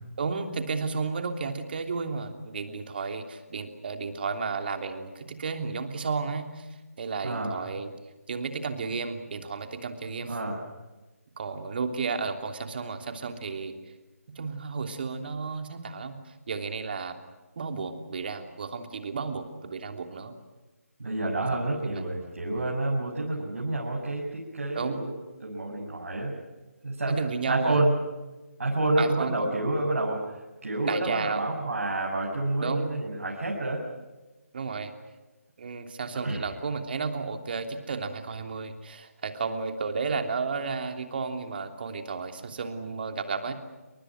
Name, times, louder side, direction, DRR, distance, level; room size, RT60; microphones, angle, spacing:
voice 1, 0.2-6.7 7.0-7.9 8.3-10.4 11.4-13.7 14.3-17.2 17.6-20.3 21.8-22.0 24.7-25.0 27.1-27.8 29.0-29.3 30.8-31.4 32.6-32.9 34.5-34.9 35.6-43.5, right 4 dB, 40° right, 5 dB, 3.1 m, -32 dB
voice 2, 7.2-7.6 10.3-10.6 21.0-25.1 25.4-26.4 26.8-27.2 27.5-27.9 28.6-30.3 30.6-33.8 36.2-36.4, right 2 dB, 60° right, -2 dB, 7.5 m, -28 dB
29.0 x 25.0 x 6.4 m, 1.2 s
figure-of-eight pair, 155°, 8 cm